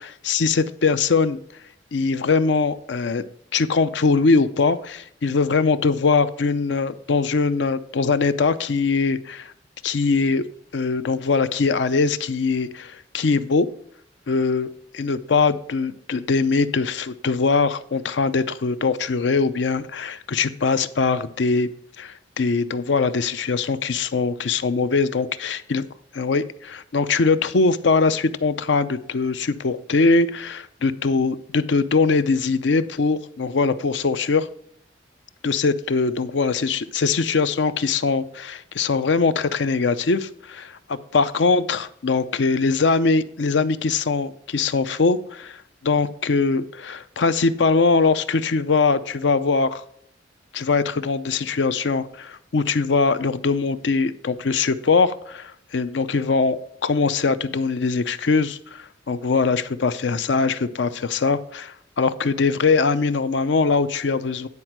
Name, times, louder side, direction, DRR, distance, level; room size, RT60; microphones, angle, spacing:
voice 1, 0.0-1.4 1.9-3.2 3.5-9.5 9.8-10.4 10.7-13.7 14.3-21.7 22.0-25.8 26.1-34.5 35.4-49.8 50.5-64.5, left 4 dB, 70° left, 13 dB, 0.6 m, -22 dB
9.7 x 4.4 x 5.9 m, 0.68 s
head